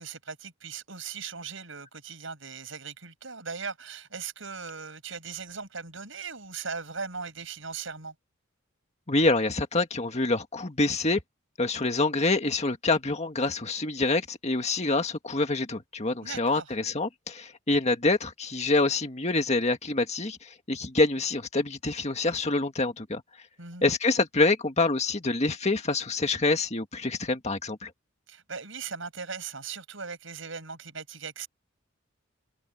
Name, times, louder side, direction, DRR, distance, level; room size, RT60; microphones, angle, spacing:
voice 1, 0.0-8.1 16.2-16.7 23.6-23.8 28.3-31.5, right 5 dB, 70° right, 7.5 m, -39 dB
voice 2, 9.1-11.2 11.6-23.2 23.8-27.9, left 3 dB, 35° left, 1.9 m, -26 dB
head